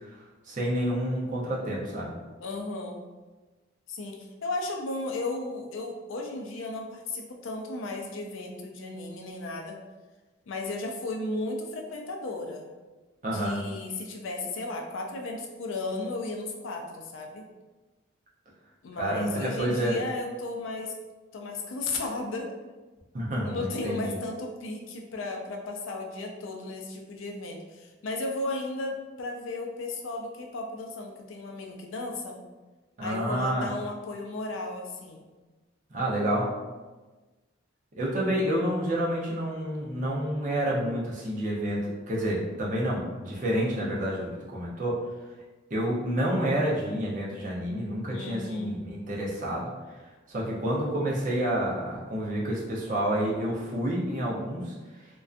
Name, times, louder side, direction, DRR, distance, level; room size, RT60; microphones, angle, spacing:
voice 1, 0.5-2.1 13.2-13.6 19.0-20.0 23.1-24.2 33.0-33.7 35.9-36.5 38.0-45.0 45.7-49.7 50.3-54.7, right 1 dB, 40° right, -4 dB, 0.5 m, -29 dB
voice 2, 2.4-3.0 3.9-9.8 10.5-12.7 13.2-17.5 18.8-20.9 21.3-22.5 23.4-32.4 33.0-35.3 48.1-48.7, left 2 dB, 80° left, 2 dB, 0.4 m, -35 dB
2.5 x 2.2 x 2.4 m, 1.2 s
head